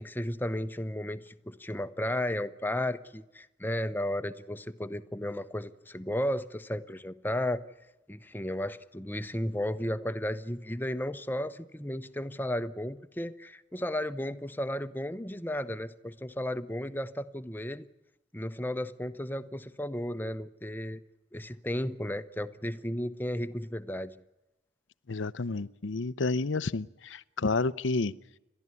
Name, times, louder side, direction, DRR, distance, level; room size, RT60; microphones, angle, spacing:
voice 1, 0.0-7.6 8.1-17.9 18.3-21.0 21.3-24.2, left 1 dB, 10° left, 0.8 m, -34 dB
voice 2, 25.1-28.1, left 3 dB, 85° left, 0.7 m, -30 dB
30.0 x 12.5 x 9.7 m
head